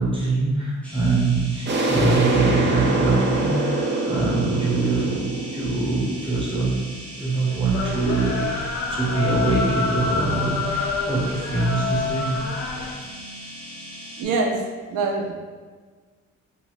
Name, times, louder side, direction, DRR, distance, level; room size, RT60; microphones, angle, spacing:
voice 1, 0.0-6.8 7.1-13.0, right 3 dB, 15° right, -5 dB, 0.9 m, -24 dB
sound 1, 0.8-14.2, equal, 5° left, 0.7 m, -39 dB
sound 2, 1.7-7.1, right 2 dB, 40° right, 0.5 m, -25 dB
sound 3, 7.7-12.9, left 4 dB, 60° left, 0.5 m, -27 dB
voice 2, 14.2-14.6 14.9-15.3, right 3 dB, 85° right, 1 dB, 0.6 m, -24 dB
2.7 x 2.6 x 3.0 m, 1.4 s
cardioid pair, 90°, 30 cm